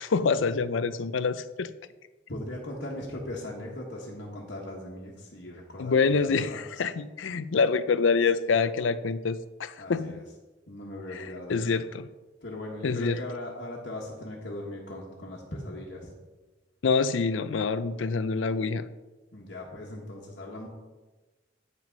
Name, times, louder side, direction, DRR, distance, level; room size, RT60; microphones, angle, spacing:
voice 1, 0.0-1.7 5.8-10.2 11.1-12.1 12.8-13.2 16.8-18.8, left 5 dB, 90° left, 13 dB, 0.5 m, -26 dB
voice 2, 2.3-6.6 9.8-10.2 10.7-11.7 12.4-16.1 19.3-20.7, left 1 dB, 60° left, -5 dB, 1.5 m, -39 dB
9.2 x 6.0 x 5.3 m, 1.2 s
head